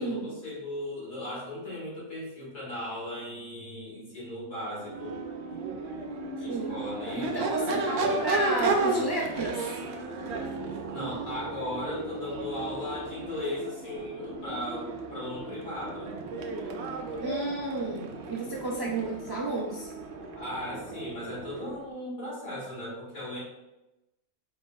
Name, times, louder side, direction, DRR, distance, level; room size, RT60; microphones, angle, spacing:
voice 1, 0.0-5.2 6.4-9.1 10.7-16.1 20.3-23.4, left 1 dB, 60° left, -7 dB, 2.1 m, -37 dB
Crowd / Race car auto racing / Accelerating revving vroom, 4.8-21.9, right 3 dB, 65° right, 0.7 m, -34 dB
voice 2, 7.1-9.7 17.2-19.9, right 2 dB, 40° right, -5 dB, 0.3 m, -32 dB
4.9 x 2.0 x 3.8 m, 0.97 s
omnidirectional pair, 1.5 m